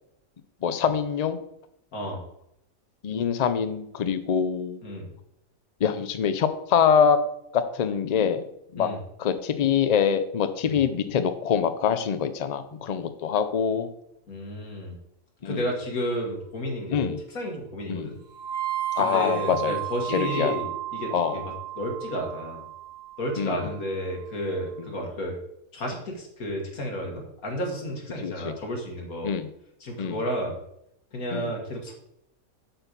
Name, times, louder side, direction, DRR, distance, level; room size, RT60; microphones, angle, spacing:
voice 1, 0.6-1.4 3.0-4.8 5.8-7.2 7.5-8.4 8.7-8.9 9.2-13.9 15.4-15.6 16.9-17.2 17.9-18.1 19.0-19.8 20.1-20.5 21.1-21.4 23.4-23.6 28.2-28.5 29.2-29.5 30.0-30.2 31.3-31.5, left 7 dB, 55° left, 11 dB, 0.4 m, -24 dB
voice 2, 4.8-5.1 8.8-9.0 10.6-10.8 14.3-15.0 15.4-18.2 19.0-21.4 21.8-22.6 23.2-25.4 25.7-29.3 29.8-30.6 31.1-31.9, equal, 80° left, 1 dB, 2.3 m, -32 dB
sound 1, 18.3-24.3, right 13 dB, 30° right, 1.8 m, -34 dB
7.6 x 4.5 x 6.8 m, 0.77 s
omnidirectional pair, 1.5 m